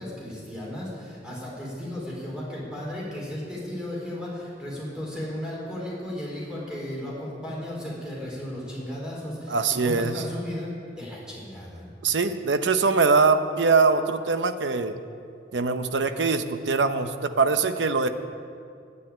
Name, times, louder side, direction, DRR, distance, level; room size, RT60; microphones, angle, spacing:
voice 1, 0.0-11.9, left 1 dB, 5° right, -5 dB, 4.0 m, -35 dB
voice 2, 9.5-10.2 12.0-15.0 15.5-18.1, right 4 dB, 90° right, 10 dB, 0.7 m, -22 dB
10.0 x 9.6 x 8.7 m, 2.4 s
head